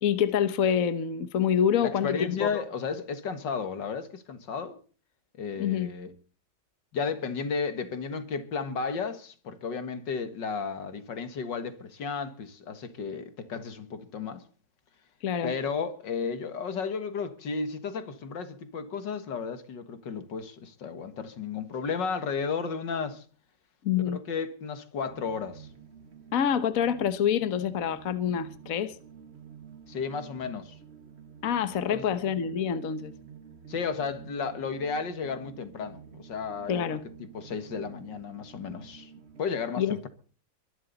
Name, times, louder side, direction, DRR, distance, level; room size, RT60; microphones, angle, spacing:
voice 1, 0.0-2.6 5.6-5.9 15.2-15.5 23.8-24.2 26.3-28.9 31.4-33.1 36.7-37.0 39.8-40.0, left 8 dB, 55° left, 1.4 m, -26 dB
voice 2, 1.8-4.8 5.4-6.1 6.9-14.4 15.4-23.2 24.0-25.7 29.9-30.7 31.9-32.0 33.7-37.0 37.3-39.1 39.4-40.1, left 5 dB, 80° left, 2.3 m, -33 dB
sound 1, 25.1-39.4, right 7 dB, 40° right, 1.6 m, -49 dB
23.0 x 12.0 x 4.0 m
omnidirectional pair, 1.9 m